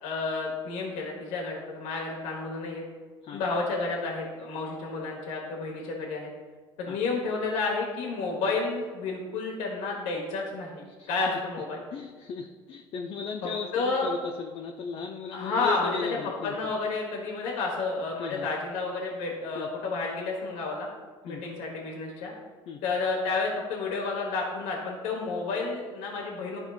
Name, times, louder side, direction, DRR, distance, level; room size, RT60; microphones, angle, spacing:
voice 1, 0.0-2.8 3.3-6.3 6.8-11.8 13.7-14.1 15.3-16.2 16.4-20.9 21.2-22.3 22.8-26.6, left 3 dB, 70° left, -1 dB, 1.3 m, -31 dB
voice 2, 11.0-11.4 11.9-16.7 18.2-18.5 19.5-19.7 21.3-21.4 22.7-22.8, left 5 dB, 50° left, 3 dB, 0.6 m, -36 dB
12.0 x 4.3 x 2.4 m, 1.4 s
hypercardioid pair, 70°, 13 cm